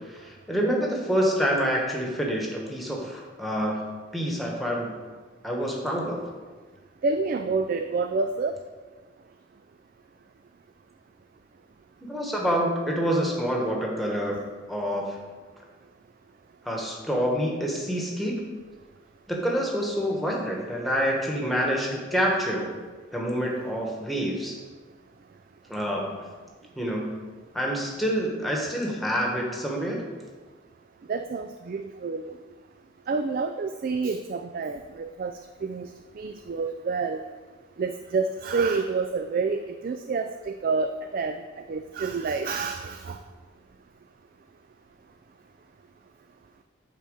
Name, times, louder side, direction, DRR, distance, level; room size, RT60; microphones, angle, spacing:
voice 1, 0.0-3.9 4.1-4.9 5.4-6.2 12.0-14.4 14.7-15.2 16.6-18.4 19.3-22.7 23.1-24.6 25.7-26.2 26.7-27.1 27.5-30.0, equal, ahead, -2 dB, 1.3 m, -27 dB
voice 2, 7.0-8.5 31.1-32.3 33.1-35.9 36.2-37.2 37.8-41.4 41.7-43.2, right 4 dB, 45° right, 7 dB, 0.3 m, -28 dB
9.1 x 4.1 x 6.5 m, 1.4 s
head